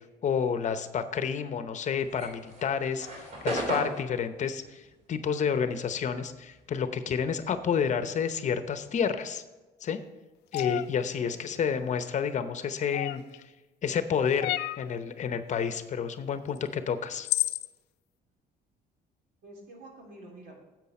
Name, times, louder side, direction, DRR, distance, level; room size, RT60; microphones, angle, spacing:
voice 1, 0.2-9.4 9.8-10.0 10.5-13.2 13.8-17.3, left 7 dB, 45° left, 10 dB, 0.8 m, -30 dB
sound 1, 2.0-6.8 7.0-9.0, right 1 dB, 45° right, 2.8 m, -36 dB
sound 2, 10.5-10.9 12.9-13.4 14.4-14.9 16.6-16.7 17.2-17.7, left 16 dB, 80° left, 0.4 m, -30 dB
voice 2, 11.1-11.6 19.4-20.5, right 2 dB, 75° right, -1 dB, 3.2 m, -49 dB
10.5 x 7.8 x 4.3 m, 1.2 s
cardioid pair, 110°, 17 cm